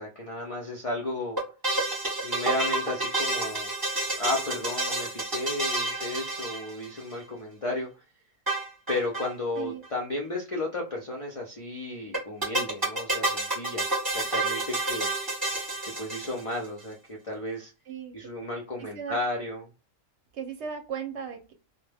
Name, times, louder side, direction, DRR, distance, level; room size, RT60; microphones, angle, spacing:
voice 1, 0.0-1.4 2.2-3.7 4.1-7.9 8.9-15.1 15.8-17.7 18.1-19.7, left 2 dB, 50° left, -2 dB, 0.4 m, -33 dB
sound 1, 1.4-7.1 8.5-9.3 9.6-9.7 9.8-9.9 12.1-16.7, right 2 dB, 20° right, 0.8 m, -29 dB
voice 2, 18.8-19.2 20.3-21.5, right 7 dB, 65° right, 5 dB, 0.8 m, -36 dB
2.2 x 2.1 x 3.2 m, 0.31 s
omnidirectional pair, 1.4 m